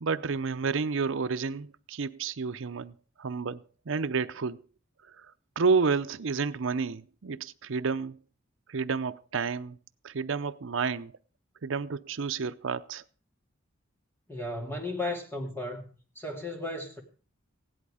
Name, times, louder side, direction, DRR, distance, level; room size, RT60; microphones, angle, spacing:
voice 1, 0.0-4.6 5.2-5.3 5.6-8.2 8.7-9.8 10.0-11.1 11.6-13.0, right 5 dB, 75° right, 0.6 m, -30 dB
voice 2, 14.3-17.0, left 2 dB, 10° left, 2.5 m, -35 dB
16.5 x 11.0 x 4.9 m
head